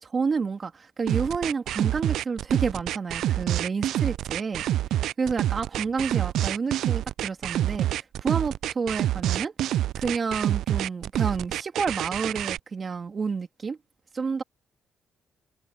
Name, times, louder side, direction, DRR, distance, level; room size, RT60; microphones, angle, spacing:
voice 1, 0.0-4.6 5.2-9.5 10.0-13.8 14.1-14.4, right 5 dB, 40° right, 2.5 m, -29 dB
sound 1, 1.1-12.6, right 12 dB, 80° right, 0.3 m, -27 dB
cardioid pair, 90°, 0 cm